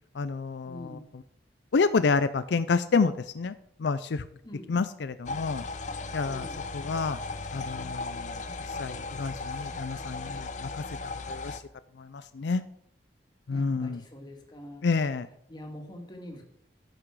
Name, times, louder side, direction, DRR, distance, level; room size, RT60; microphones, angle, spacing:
voice 1, 0.1-1.2 1.7-4.2 4.7-5.6 6.1-6.5 6.7-7.2 7.5-11.6 12.0-12.6 13.5-14.0 14.8-15.3, left 4 dB, 80° left, 12 dB, 0.5 m, -29 dB
voice 2, 0.7-1.0 4.4-4.7 6.2-6.6 13.5-14.8 15.5-16.5, left 1 dB, 25° left, 2 dB, 1.8 m, -44 dB
sound 1, 5.3-11.6, left 3 dB, 45° left, 0.7 m, -36 dB
14.5 x 5.9 x 4.8 m, 0.72 s
head